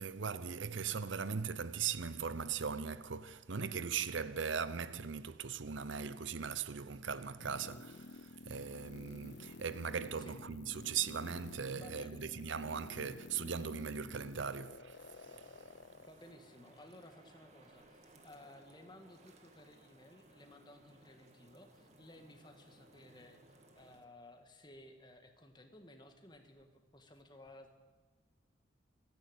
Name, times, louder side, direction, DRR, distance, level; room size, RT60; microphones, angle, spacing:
voice 1, 0.0-15.5, right 6 dB, 75° right, 0.7 m, -39 dB
sound 1, 7.4-16.1, left 3 dB, 60° left, 0.6 m, -52 dB
voice 2, 11.7-12.3 16.0-27.7, left 1 dB, 25° left, 1.9 m, -57 dB
sound 2, 15.2-24.0, right 1 dB, 35° right, 2.2 m, -62 dB
28.0 x 11.0 x 8.9 m
head